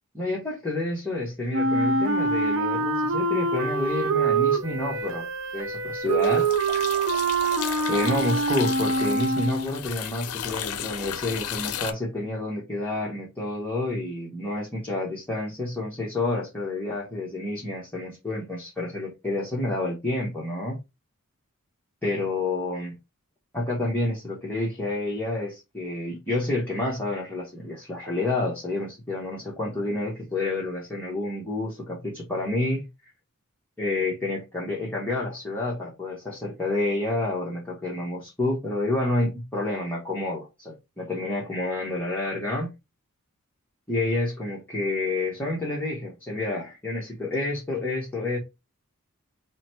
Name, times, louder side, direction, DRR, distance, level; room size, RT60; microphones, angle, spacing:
voice 1, 0.1-5.3 5.5-6.5 7.9-20.8 22.0-23.0 23.5-32.9 33.8-42.7 43.9-48.4, left 2 dB, 10° left, 1.0 m, -29 dB
Wind instrument woodwind instrument, 1.5-9.8, right 3 dB, 60° right, 0.7 m, -25 dB
sound 1, 3.8-4.4 4.7-11.9, left 10 dB, 75° left, 0.5 m, -34 dB
4.0 x 2.1 x 4.4 m
head